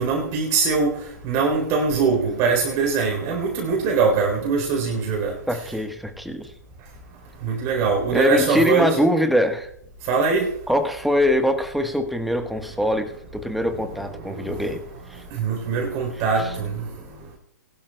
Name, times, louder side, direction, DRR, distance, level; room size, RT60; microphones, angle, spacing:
voice 1, 0.0-5.4 7.4-9.0 10.1-10.6 14.2-14.8 15.3-16.9, right 4 dB, 35° right, 3.6 m, -22 dB
voice 2, 5.5-6.5 8.1-9.7 10.7-14.8 15.1-15.2 16.4-16.5, equal, ahead, 1.2 m, -23 dB
21.0 x 12.0 x 2.3 m
figure-of-eight pair, 120°, 10 cm